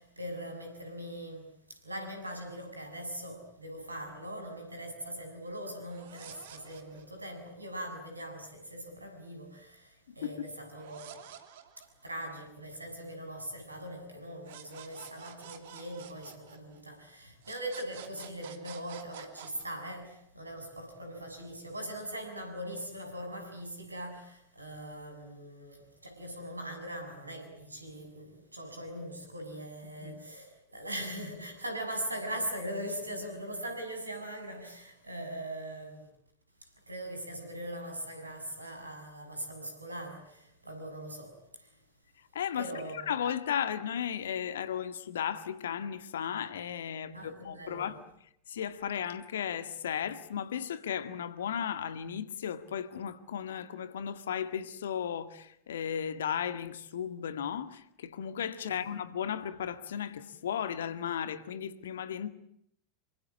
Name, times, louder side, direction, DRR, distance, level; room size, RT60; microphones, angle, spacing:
voice 1, 0.0-11.2 11.8-36.1 36.6-41.7 42.6-43.1 47.0-47.9 58.6-58.8, right 1 dB, 85° right, 6.7 m, -41 dB
sound 1, 5.8-7.2 10.7-12.3 14.4-17.0 17.4-19.6, right 10 dB, 60° right, 3.0 m, -50 dB
voice 2, 10.1-10.5 30.0-30.2 42.3-48.0 48.5-62.3, left 8 dB, 65° left, 1.9 m, -35 dB
28.0 x 24.5 x 8.6 m
figure-of-eight pair, 85°, 0 cm